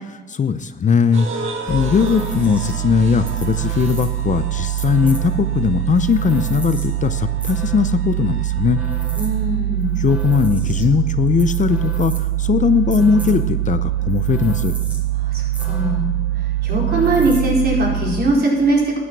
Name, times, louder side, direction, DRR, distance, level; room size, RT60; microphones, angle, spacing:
voice 1, 0.3-8.8 10.0-14.7, left 6 dB, 40° left, 12 dB, 0.6 m, -19 dB
sound 1, 1.1-9.5, right 3 dB, 80° right, 1.8 m, -35 dB
sound 2, 1.7-18.2, right 12 dB, 5° right, 2.3 m, -23 dB
voice 2, 9.2-9.9 15.3-16.1 16.6-19.0, right 2 dB, 55° right, -2 dB, 4.5 m, -20 dB
12.5 x 9.6 x 6.1 m, 1.3 s
cardioid pair, 90°, 20 cm